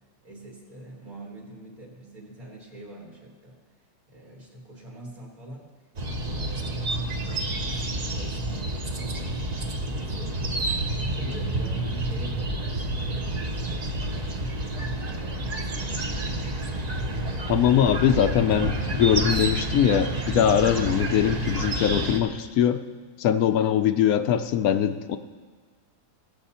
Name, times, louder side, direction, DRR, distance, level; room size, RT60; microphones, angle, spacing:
voice 1, 0.2-3.6 4.1-5.6 6.1-7.2 7.6-9.3 9.9-10.6 10.9-14.5 15.0-16.6, right 1 dB, 60° right, -3 dB, 2.4 m, -44 dB
sound 1, 6.0-22.2, right 1 dB, 35° right, 0.8 m, -29 dB
voice 2, 17.5-22.8 23.2-25.2, left 9 dB, 70° left, 10 dB, 1.0 m, -22 dB
19.0 x 7.5 x 4.3 m, 1.4 s
omnidirectional pair, 1.7 m